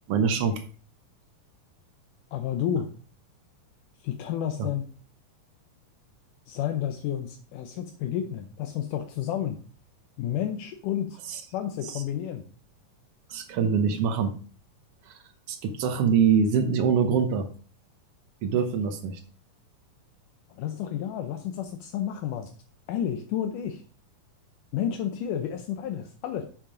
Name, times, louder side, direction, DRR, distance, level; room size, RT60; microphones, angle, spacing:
voice 1, 0.1-0.6 4.6-4.7 11.3-11.4 11.9-12.0 13.3-14.3 15.1-15.2 15.5-17.5 18.4-19.2, right 6 dB, 85° right, 7 dB, 1.3 m, -24 dB
voice 2, 2.3-2.9 4.0-4.8 6.5-9.6 10.2-11.2 11.5-12.4 20.5-22.5 22.9-23.8 24.7-26.4, left 10 dB, 75° left, 7 dB, 2.2 m, -31 dB
7.5 x 7.4 x 5.0 m, 0.41 s
omnidirectional pair, 3.9 m